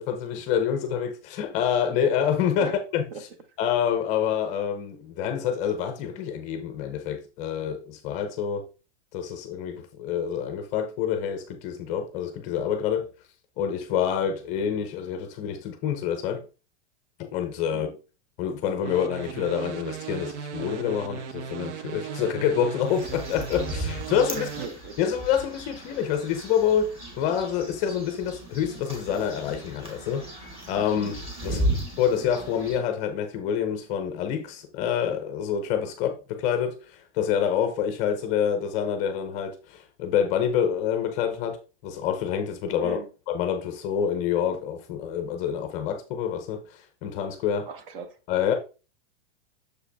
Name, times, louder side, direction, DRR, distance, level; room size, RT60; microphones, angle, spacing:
voice 1, 0.0-3.3 3.6-8.7 9.1-13.1 13.6-16.4 17.2-17.9 18.4-24.5 25.0-31.6 32.0-43.0 43.3-47.7 48.3-48.5, left 8 dB, 20° left, 0.5 m, -27 dB
sound 1, 18.8-24.7, right 7 dB, 90° right, 0.8 m, -37 dB
sound 2, 22.8-32.8, equal, 15° right, 2.0 m, -35 dB
voice 2, 24.3-24.9 31.4-31.7 42.8-43.1 47.7-48.2, right 5 dB, 50° right, 1.0 m, -38 dB
6.7 x 4.9 x 3.3 m
supercardioid pair, 170°, 35 cm